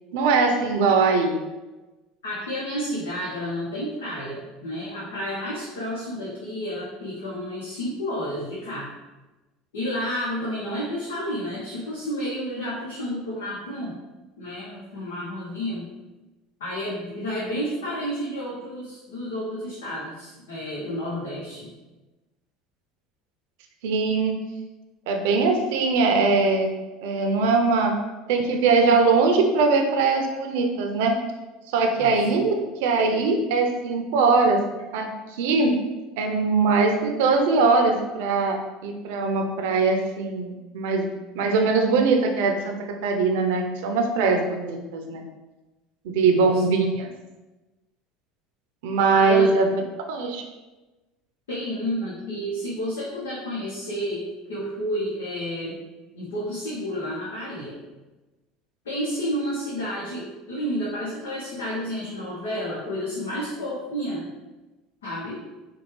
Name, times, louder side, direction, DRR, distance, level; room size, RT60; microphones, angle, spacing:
voice 1, 0.1-1.4 23.8-24.3 25.1-26.7 27.0-27.9 28.3-31.2 31.7-32.5 32.8-34.6 34.9-35.7 36.2-41.1 41.3-42.8 43.0-45.2 46.0-47.1 48.8-49.7 50.1-50.4, right 4 dB, 75° right, 4 dB, 0.5 m, -21 dB
voice 2, 2.2-8.9 9.7-14.0 14.4-15.9 16.6-21.7 32.0-32.3 46.2-46.6 49.1-49.7 51.5-55.8 56.1-57.8 58.8-64.3 65.0-65.4, equal, 85° left, -7 dB, 0.8 m, -31 dB
4.3 x 2.3 x 3.2 m, 1.1 s
hypercardioid pair, 85°, 0 cm